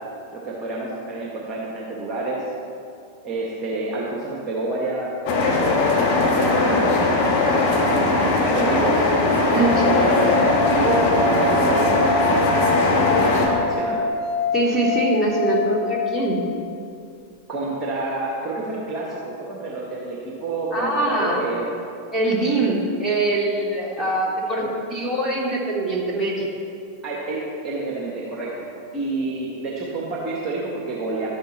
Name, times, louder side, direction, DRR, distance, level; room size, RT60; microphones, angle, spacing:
voice 1, 0.3-2.4 3.2-5.1 5.8-7.2 7.7-9.1 9.4-12.5 12.8-14.0 17.5-21.7 24.6-24.7 27.0-31.3, right 2 dB, 25° right, -4 dB, 1.9 m, -29 dB
sound 1, 5.3-13.5, left 2 dB, 45° left, 2.1 m, -19 dB
sound 2, 9.5-16.6, left 3 dB, 25° left, 1.8 m, -25 dB
voice 2, 9.5-10.1 14.5-16.4 20.7-21.4 22.1-26.5, right 2 dB, 5° right, -5 dB, 2.6 m, -23 dB
12.0 x 10.0 x 4.4 m, 2.6 s
figure-of-eight pair, 90°, 0 cm